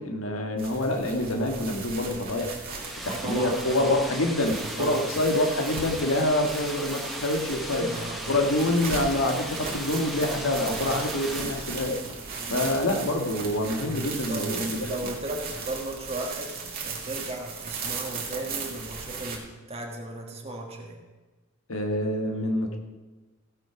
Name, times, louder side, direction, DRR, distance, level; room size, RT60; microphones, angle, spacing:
voice 1, 0.0-2.6 3.0-7.9 8.3-12.0 12.5-14.9 21.7-22.8, left 1 dB, 75° left, 3 dB, 1.6 m, -26 dB
sound 1, 0.6-19.4, right 4 dB, 45° right, 2.2 m, -37 dB
sound 2, 2.8-11.4, equal, ahead, 1.0 m, -37 dB
voice 2, 3.0-4.0 4.8-5.0 7.8-8.4 12.4-12.7 14.3-21.0, right 2 dB, 30° right, 1 dB, 1.5 m, -36 dB
16.0 x 5.8 x 6.0 m, 1.2 s
head